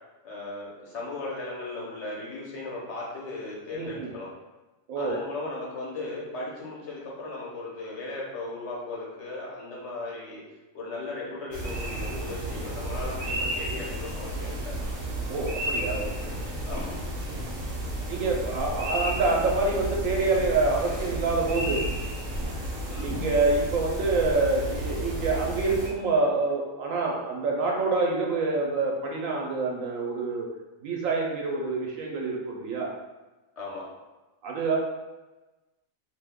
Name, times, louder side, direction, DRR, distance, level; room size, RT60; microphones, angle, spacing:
voice 1, 0.2-4.3 5.0-10.4 10.7-14.7 16.6-16.9 22.9-23.1 33.6-33.9, left 2 dB, 60° left, -5 dB, 1.1 m, -37 dB
voice 2, 3.7-4.1 4.9-5.2 15.3-16.3 18.1-21.8 23.0-30.5 30.8-32.9 34.4-34.8, right 3 dB, 80° right, -1 dB, 1.0 m, -26 dB
sound 1, 11.5-25.9, right 1 dB, 50° right, 0.8 m, -32 dB
2.7 x 2.2 x 3.4 m, 1.1 s
omnidirectional pair, 1.4 m